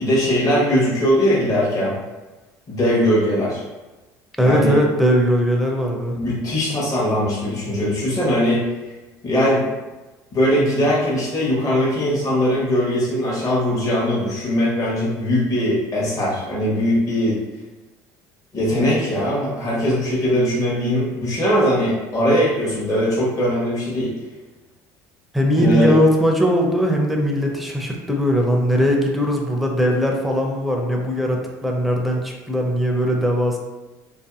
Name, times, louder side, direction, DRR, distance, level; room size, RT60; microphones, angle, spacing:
voice 1, 0.0-2.0 2.7-3.6 4.4-4.8 6.1-8.6 9.2-9.6 10.3-17.4 18.5-24.1 25.6-26.0, equal, 40° left, -5 dB, 1.1 m, -20 dB
voice 2, 4.4-6.2 25.3-33.6, equal, ahead, 0 dB, 0.6 m, -19 dB
2.6 x 2.5 x 2.4 m, 1.1 s
hypercardioid pair, 70°, 9 cm